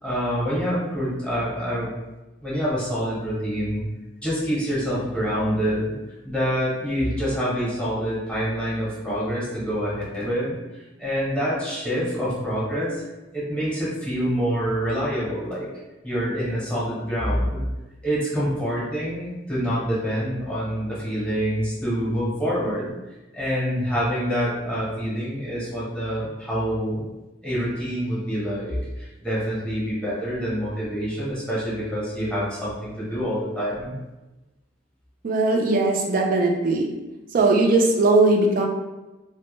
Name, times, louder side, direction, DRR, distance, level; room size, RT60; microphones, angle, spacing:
voice 1, 0.0-1.9 2.4-3.8 4.2-5.9 6.2-10.5 11.0-13.0 13.3-15.7 16.0-17.6 18.0-22.9 23.3-27.0 27.4-34.0, equal, 5° left, -9 dB, 0.8 m, -26 dB
voice 2, 35.2-36.9 37.3-38.7, right 2 dB, 45° right, 1 dB, 0.4 m, -19 dB
2.1 x 2.0 x 3.0 m, 1.1 s
head